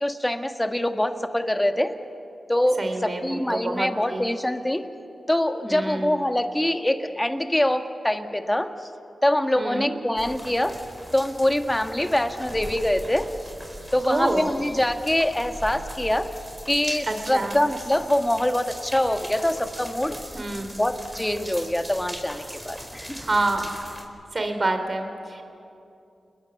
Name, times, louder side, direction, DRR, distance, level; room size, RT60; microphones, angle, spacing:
voice 1, 0.0-1.9 2.5-4.9 5.3-8.9 9.2-10.8 11.1-13.3 13.9-16.3 16.7-20.2 20.8-23.2, left 1 dB, 15° left, 7 dB, 1.8 m, -24 dB
voice 2, 2.8-4.3 5.6-6.2 9.5-9.9 14.1-14.5 17.1-17.6 20.3-20.7 23.2-23.6 24.3-25.4, right 2 dB, 45° right, 6 dB, 3.7 m, -27 dB
sound 1, 10.2-24.0, equal, 10° right, 4.6 m, -40 dB
29.5 x 20.5 x 7.2 m, 2.7 s
cardioid pair, 45°, 0 cm